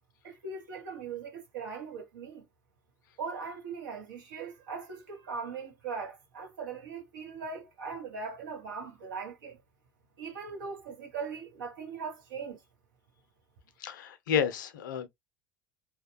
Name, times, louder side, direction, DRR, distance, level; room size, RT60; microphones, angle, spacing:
voice 1, 0.2-2.4 3.2-9.6 10.2-12.6, right 5 dB, 70° right, 1.1 m, -40 dB
voice 2, 13.8-15.1, left 8 dB, 70° left, 0.5 m, -30 dB
2.8 x 2.3 x 2.2 m
figure-of-eight pair, 65°, 11 cm